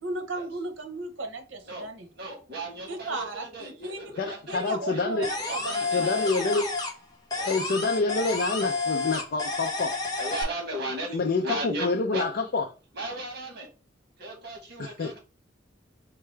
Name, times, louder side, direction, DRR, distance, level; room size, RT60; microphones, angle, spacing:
voice 1, 0.0-2.1 2.9-4.0 4.5-6.1 6.5-6.6, right 2 dB, 75° right, 0.9 m, -35 dB
voice 2, 2.1-4.6 4.9-5.1 5.4-6.5 7.4-7.6 8.0-8.2 10.2-12.3 12.9-13.7 14.2-15.2, right 1 dB, 60° right, 1.5 m, -36 dB
voice 3, 4.2-5.3 5.9-6.7 7.4-9.9 11.1-12.6 14.8-15.1, left 3 dB, 55° left, 0.4 m, -27 dB
sound 1, 5.2-7.0 7.3-10.4, left 3 dB, 20° left, 1.0 m, -30 dB
4.6 x 2.3 x 3.1 m
head